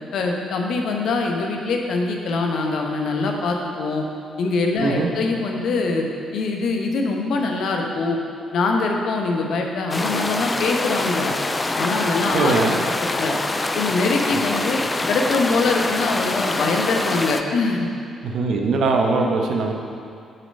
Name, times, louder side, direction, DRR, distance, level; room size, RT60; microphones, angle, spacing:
voice 1, 0.1-4.0 4.4-6.1 6.3-8.2 8.5-11.3 11.7-12.8 13.1-13.3 13.7-14.8 15.1-17.9 19.2-19.3, left 3 dB, 60° left, 2 dB, 1.0 m, -23 dB
sound 1, 9.9-17.4, left 2 dB, 25° left, 0.5 m, -25 dB
voice 2, 12.3-12.7 18.2-19.7, right 4 dB, 60° right, 2 dB, 0.9 m, -21 dB
7.5 x 6.2 x 5.3 m, 2.3 s
figure-of-eight pair, 40°, 0 cm